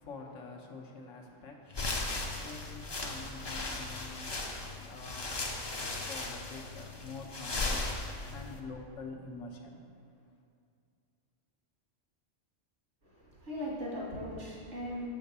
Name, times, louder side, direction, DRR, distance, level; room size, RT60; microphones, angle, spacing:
voice 1, 0.1-1.5 2.4-4.3 4.8-5.3 6.1-7.8 8.3-9.7, left 3 dB, 85° left, 2 dB, 1.2 m, -46 dB
sound 1, 1.7-8.6, left 2 dB, 35° left, 0.4 m, -37 dB
voice 2, 13.0-15.1, equal, 70° right, -5 dB, 2.2 m, -39 dB
6.6 x 5.2 x 5.4 m, 2.3 s
omnidirectional pair, 1.3 m